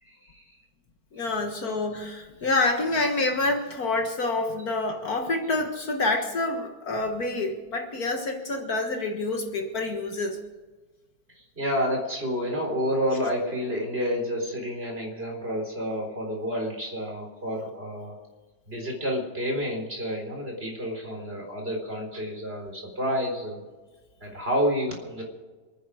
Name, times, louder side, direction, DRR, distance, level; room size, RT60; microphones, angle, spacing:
voice 1, 0.0-0.5 11.4-18.2 18.7-23.6 24.2-25.2, equal, 35° right, 1 dB, 4.3 m, -29 dB
voice 2, 1.1-10.4, left 2 dB, 60° left, 4 dB, 2.0 m, -27 dB
27.0 x 9.6 x 5.0 m, 1.3 s
omnidirectional pair, 1.9 m